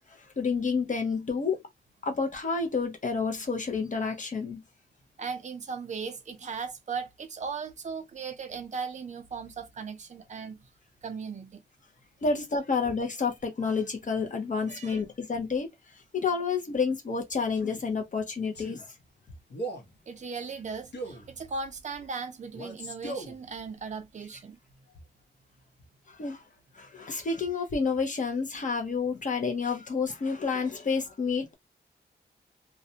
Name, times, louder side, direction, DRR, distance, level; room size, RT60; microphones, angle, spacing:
voice 1, 0.4-1.6 2.0-4.6 12.2-15.7 16.1-18.9 26.1-26.4 26.8-31.5, left 5 dB, 45° left, 0.6 m, -29 dB
voice 2, 5.2-10.7 11.0-11.6 14.7-15.0 20.1-24.6, right 5 dB, 40° right, 0.5 m, -37 dB
Male speech man speaking, 17.5-17.9 18.5-18.8 19.5-19.9 20.9-21.3 22.5-23.4, right 1 dB, 70° left, 0.9 m, -38 dB
2.4 x 2.1 x 2.7 m
wide cardioid pair, 175°, 19 cm